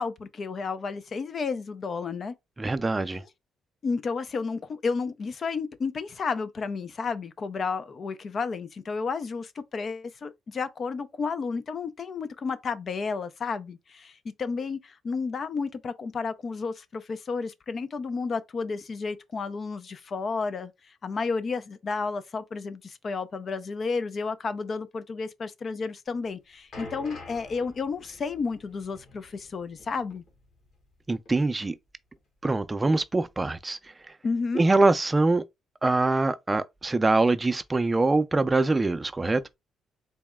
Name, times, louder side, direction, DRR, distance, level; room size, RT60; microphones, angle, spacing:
voice 1, 0.0-2.3 3.8-20.7 21.0-30.2 34.2-34.7, left 4 dB, 45° left, 0.5 m, -32 dB
voice 2, 2.6-3.2 31.1-31.8 32.4-33.8 34.5-35.4 35.8-39.4, right 3 dB, 20° right, 0.4 m, -23 dB
sound 1, 26.1-31.0 31.3-31.4 32.2-32.3, left 2 dB, 70° left, 1.7 m, -47 dB
4.0 x 2.1 x 3.5 m
cardioid pair, 90°, 0 cm